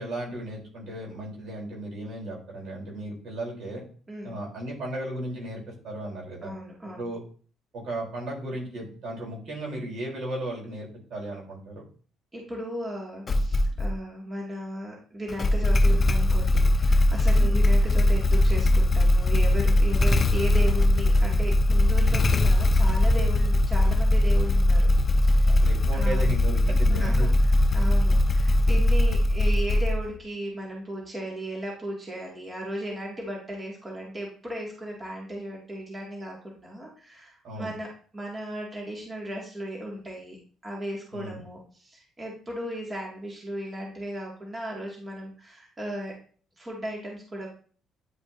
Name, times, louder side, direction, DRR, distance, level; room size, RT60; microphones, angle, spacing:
voice 1, 0.0-3.8 4.2-6.5 6.9-7.2 7.7-11.8 17.3-17.5 25.5-27.3 37.4-37.7 41.1-41.4, right 1 dB, 60° right, -2 dB, 3.3 m, -35 dB
voice 2, 6.4-7.1 12.3-25.6 25.9-26.3 26.9-37.9 38.1-40.4 40.6-46.1 46.6-47.5, right 1 dB, 25° right, -3 dB, 1.9 m, -36 dB
Motorcycle / Engine starting, 13.3-13.9 15.3-30.2, left 1 dB, 30° left, 0.5 m, -20 dB
9.6 x 5.0 x 2.6 m, 0.43 s
cardioid pair, 105°, 0 cm